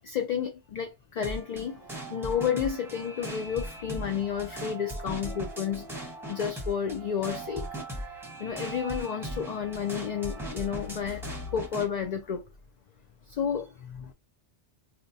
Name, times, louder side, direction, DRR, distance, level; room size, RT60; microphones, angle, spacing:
voice 1, 0.0-7.7 8.1-12.5 13.3-14.1, left 8 dB, 55° left, 0.5 m, -31 dB
sound 1, 1.2-11.9, right 1 dB, ahead, 0.9 m, -39 dB
4.1 x 2.1 x 2.6 m
omnidirectional pair, 1.1 m